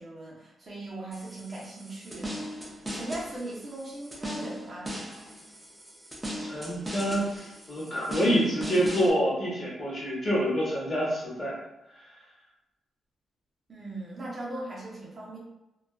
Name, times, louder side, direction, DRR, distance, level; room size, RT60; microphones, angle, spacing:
voice 1, 0.0-2.4 2.9-4.9 13.7-15.4, right 2 dB, 40° right, -5 dB, 0.7 m, -39 dB
sound 1, 1.1-9.1, equal, 10° right, 0.5 m, -39 dB
voice 2, 6.4-11.5, equal, 35° left, -5 dB, 0.9 m, -27 dB
2.4 x 2.3 x 2.3 m, 0.94 s
cardioid pair, 110°, 0 cm